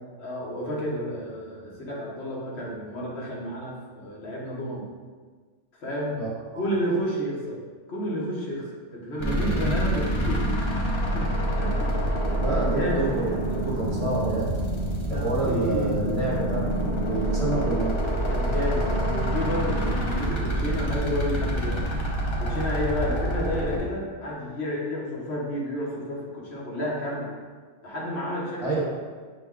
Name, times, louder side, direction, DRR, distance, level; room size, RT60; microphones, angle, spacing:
voice 1, 0.2-4.9 5.8-6.2 6.5-7.6 7.9-10.5 11.1-11.9 12.5-13.1 15.1-16.1 18.3-21.8 22.4-27.3 27.8-28.9, equal, 60° left, -4 dB, 1.3 m, -31 dB
voice 2, 6.1-6.6 12.4-14.5 15.1-18.0 28.6-28.9, right 2 dB, 30° right, -4 dB, 0.8 m, -28 dB
sound 1, 9.2-23.8, right 1 dB, 30° left, 0.6 m, -26 dB
6.5 x 2.2 x 3.5 m, 1.5 s
omnidirectional pair, 1.3 m